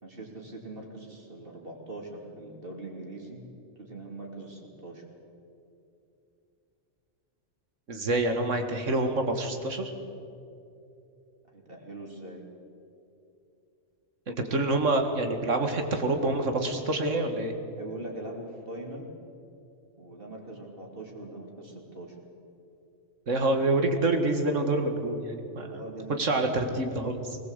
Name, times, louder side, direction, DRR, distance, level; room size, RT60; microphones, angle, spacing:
voice 1, 0.0-3.4 3.8-5.0 11.5-12.5 17.8-19.1 20.0-22.1 25.7-26.3, right 2 dB, 50° right, 0 dB, 3.3 m, -42 dB
voice 2, 7.9-9.9 14.3-17.5 23.3-25.9 26.2-27.4, right 2 dB, 85° right, 5 dB, 2.2 m, -27 dB
21.5 x 19.5 x 8.1 m, 2.7 s
omnidirectional pair, 1.2 m